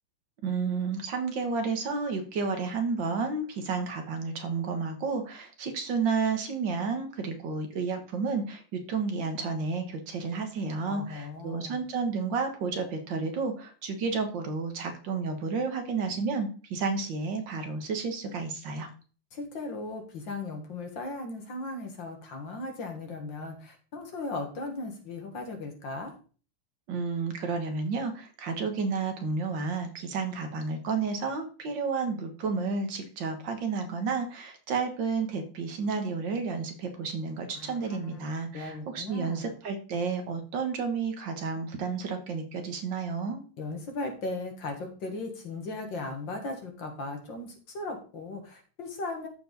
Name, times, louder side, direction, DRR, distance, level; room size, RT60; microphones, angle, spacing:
voice 1, 0.4-18.9 26.9-43.4, right 4 dB, 60° right, 6 dB, 2.0 m, -31 dB
voice 2, 10.9-11.8 19.3-26.1 37.5-38.3 38.5-39.5 43.6-49.3, left 2 dB, 60° left, 3 dB, 2.4 m, -37 dB
13.5 x 4.7 x 4.0 m, 0.39 s
omnidirectional pair, 2.3 m